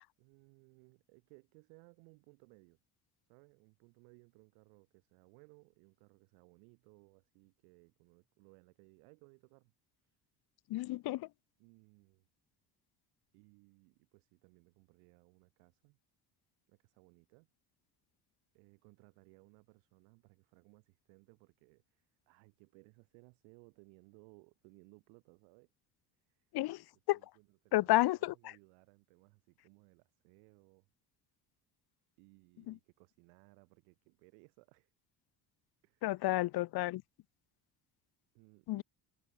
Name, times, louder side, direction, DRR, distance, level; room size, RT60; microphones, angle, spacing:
voice 1, 0.2-2.8 3.3-9.7 10.0-10.2 11.6-12.3 13.3-16.0 16.7-17.5 18.5-25.7 26.3-26.5 27.1-30.9 32.2-34.9 35.8-36.4 38.3-38.8, right 39 dB, 90° right, 5.1 m, -63 dB
voice 2, 10.7-11.3 26.5-26.8 27.1-27.2 27.7-28.3 32.7-32.8 36.0-37.0 38.7-38.8, left 17 dB, 55° left, 0.5 m, -31 dB
supercardioid pair, 65°, 48 cm